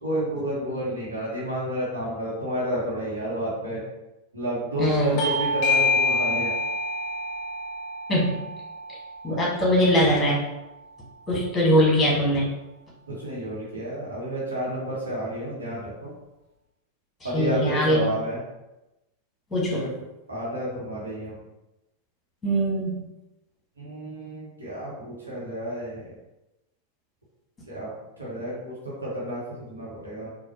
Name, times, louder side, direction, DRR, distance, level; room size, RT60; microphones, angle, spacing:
voice 1, 0.0-3.8 4.3-6.5 13.1-16.1 17.2-18.4 19.7-19.9 20.3-21.4 23.8-26.1 27.7-27.9 28.2-30.3, right 1 dB, 75° right, -6 dB, 1.3 m, -30 dB
voice 2, 4.8-5.2 8.1-8.4 9.2-10.4 11.3-12.5 17.2-18.0 19.5-19.8 22.4-22.9, equal, 10° left, -4 dB, 1.3 m, -21 dB
Bell / Doorbell, 5.2-10.4, left 2 dB, 40° left, 0.6 m, -27 dB
4.1 x 2.6 x 2.8 m, 0.97 s
figure-of-eight pair, 90°, 0 cm